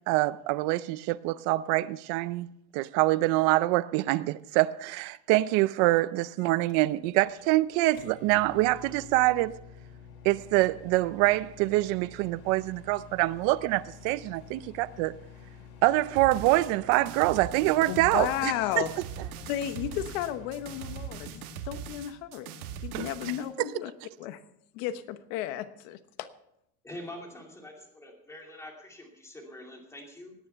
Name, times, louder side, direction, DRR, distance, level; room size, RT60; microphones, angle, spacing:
voice 1, 0.1-9.6 10.2-15.1 15.8-18.8 22.9-23.1 23.6-23.7, right 18 dB, 40° right, 0.5 m, -25 dB
Microwave oven, 6.4-21.5, left 6 dB, 90° left, 4.6 m, -50 dB
sound 1, 16.2-23.5, right 8 dB, 70° right, 1.9 m, -40 dB
voice 2, 17.9-18.9 19.5-23.9 24.2-24.4 24.7-26.3, left 12 dB, 55° left, 1.1 m, -33 dB
voice 3, 26.8-30.3, left 1 dB, 5° left, 2.6 m, -45 dB
18.0 x 9.3 x 5.6 m
cardioid pair, 170°, 45 cm